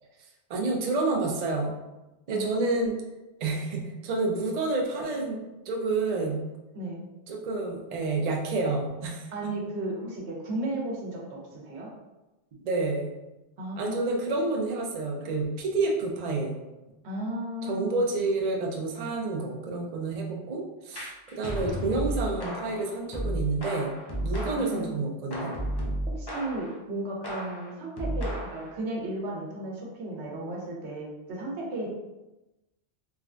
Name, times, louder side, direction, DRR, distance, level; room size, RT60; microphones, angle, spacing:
voice 1, 0.5-1.7 2.3-3.0 3.4-6.4 7.3-9.3 12.6-13.1 13.7-16.6 17.7-23.9 24.2-25.5 25.8-25.9, right 3 dB, 55° right, 0 dB, 0.5 m, -29 dB
voice 2, 2.3-2.8 6.7-7.0 9.3-11.9 13.6-14.1 17.0-18.1 24.5-25.0 26.2-31.9, right 1 dB, 80° right, -2 dB, 1.0 m, -34 dB
sound 1, 20.9-24.8 25.3-26.8 27.2-28.7, equal, 40° left, 0.3 m, -33 dB
3.3 x 2.1 x 2.4 m, 1.0 s
omnidirectional pair, 1.1 m